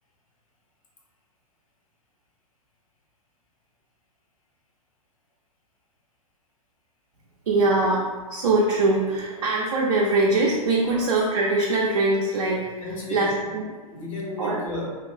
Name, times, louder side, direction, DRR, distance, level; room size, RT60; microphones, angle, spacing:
voice 1, 7.4-13.7 14.4-14.6, right 2 dB, 55° right, -4 dB, 0.6 m, -23 dB
voice 2, 12.8-13.5 13.9-14.9, left 1 dB, 55° left, -2 dB, 1.1 m, -33 dB
3.1 x 2.4 x 3.8 m, 1.4 s
figure-of-eight pair, 105°, 19 cm